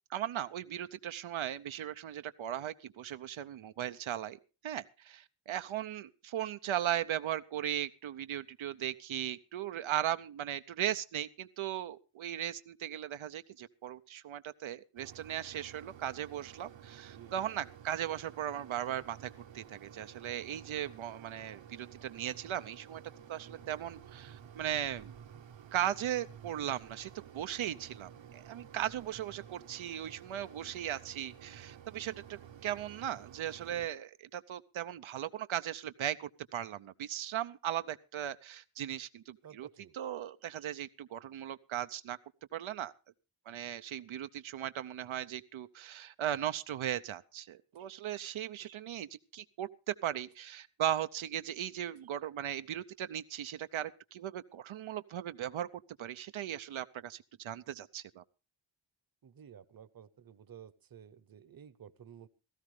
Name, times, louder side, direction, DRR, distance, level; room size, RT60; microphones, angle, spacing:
voice 1, 0.1-23.0 23.3-25.1 25.7-39.7 39.9-42.2 42.5-42.9 43.5-58.2, right 11 dB, 90° right, 11 dB, 0.7 m, -38 dB
Mechanisms, 15.0-33.9, right 9 dB, 70° right, 1.0 m, -53 dB
voice 2, 17.0-17.5 39.4-39.9 47.8-47.9 48.7-48.8 50.4-50.5 59.2-62.3, right 8 dB, 50° right, 16 dB, 0.9 m, -54 dB
17.0 x 14.5 x 3.2 m, 0.31 s
wide cardioid pair, 170°, 46 cm